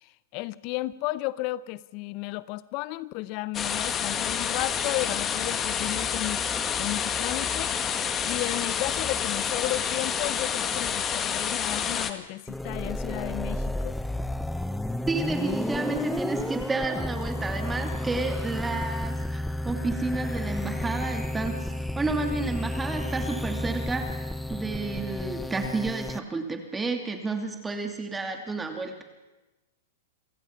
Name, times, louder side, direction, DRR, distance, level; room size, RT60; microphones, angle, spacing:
voice 1, 0.0-6.4 6.8-7.7 8.2-14.0, left 18 dB, 45° left, 19 dB, 0.7 m, -33 dB
sound 1, 3.5-12.1, left 7 dB, 25° left, 1.7 m, -28 dB
sound 2, 12.5-26.2, left 1 dB, 5° left, 0.7 m, -32 dB
voice 2, 15.1-29.0, right 3 dB, 10° right, 5 dB, 2.5 m, -31 dB
28.0 x 16.5 x 5.9 m, 1.1 s
hypercardioid pair, 110°, 0 cm